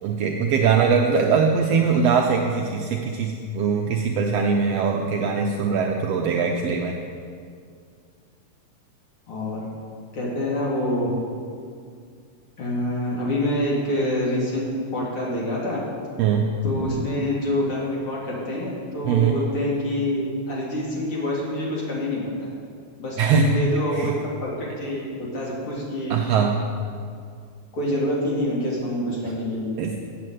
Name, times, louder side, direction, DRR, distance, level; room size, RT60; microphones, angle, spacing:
voice 1, 0.0-7.0 16.2-16.5 19.0-19.4 23.2-23.6 23.9-24.1 26.1-26.6 29.8-30.0, right 6 dB, 80° right, 1 dB, 1.5 m, -21 dB
voice 2, 9.3-9.7 10.1-11.1 12.6-14.7 14.9-15.8 16.6-22.5 23.0-24.1 24.4-26.1 27.7-29.7, left 1 dB, 50° left, -5 dB, 2.9 m, -26 dB
8.3 x 7.6 x 7.7 m, 2.2 s
omnidirectional pair, 3.4 m